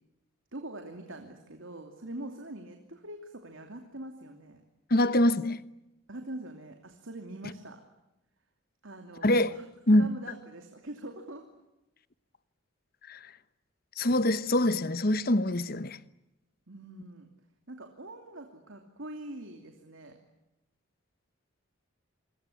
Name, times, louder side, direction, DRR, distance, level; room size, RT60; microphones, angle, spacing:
voice 1, 0.5-4.6 6.1-7.8 8.8-9.7 9.9-11.4 16.7-17.3 17.7-20.2, right 1 dB, 65° right, 2.8 m, -43 dB
voice 2, 4.9-5.6 9.2-9.6 9.9-10.1 13.1-13.3 14.0-16.0, left 1 dB, 45° left, 1.0 m, -24 dB
28.0 x 23.5 x 8.5 m
head